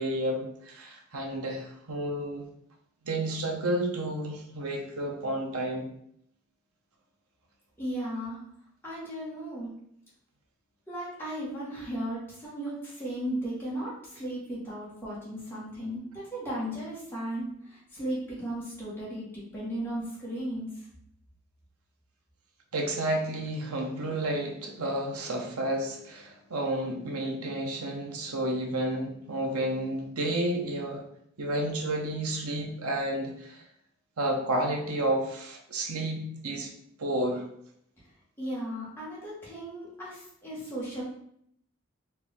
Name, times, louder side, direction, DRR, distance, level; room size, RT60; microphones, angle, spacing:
voice 1, 0.0-2.4 3.0-5.9 22.7-31.0 31.4-33.6 34.2-36.7 37.0-37.4, right 1 dB, 90° right, 2 dB, 0.9 m, -31 dB
voice 2, 7.8-8.4 8.8-9.7 10.9-20.7 38.4-41.0, right 1 dB, 10° left, -8 dB, 1.5 m, -36 dB
4.5 x 2.8 x 3.5 m, 0.71 s
head